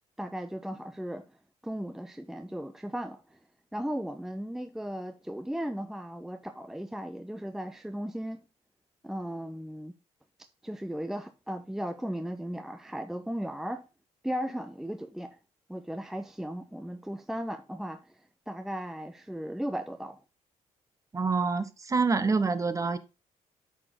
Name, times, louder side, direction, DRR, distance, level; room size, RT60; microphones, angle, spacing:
voice 1, 0.2-1.2 1.6-3.4 3.7-8.4 9.0-9.9 10.6-13.9 14.2-15.4 15.7-18.2 18.5-20.2, equal, 5° right, 0.5 m, -36 dB
voice 2, 21.1-23.0, right 4 dB, 25° right, 0.8 m, -26 dB
8.6 x 5.0 x 3.5 m
cardioid pair, 95°, 12 cm